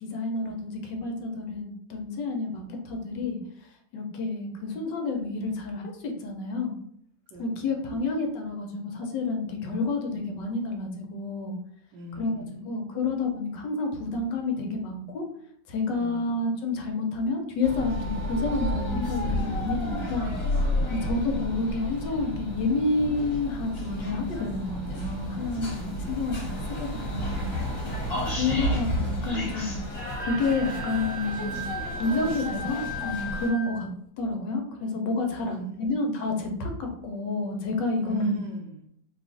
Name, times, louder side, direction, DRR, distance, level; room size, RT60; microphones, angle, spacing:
voice 1, 0.0-3.4 3.9-6.8 7.4-11.5 12.1-12.3 12.7-15.2 15.7-20.3 20.9-27.5 28.4-31.6 32.0-33.9 34.2-38.4, left 3 dB, 75° left, 2 dB, 1.2 m, -29 dB
voice 2, 11.9-12.6 16.0-16.5 20.9-21.2 25.7-26.6 28.0-28.7 35.3-35.9 38.0-38.9, right 3 dB, 75° right, 0 dB, 1.1 m, -39 dB
sound 1, 17.6-33.5, left 1 dB, 50° left, 1.3 m, -31 dB
Wind instrument woodwind instrument, 30.2-33.9, right 1 dB, 90° right, 1.5 m, -37 dB
3.2 x 2.4 x 2.4 m, 0.70 s
omnidirectional pair, 2.0 m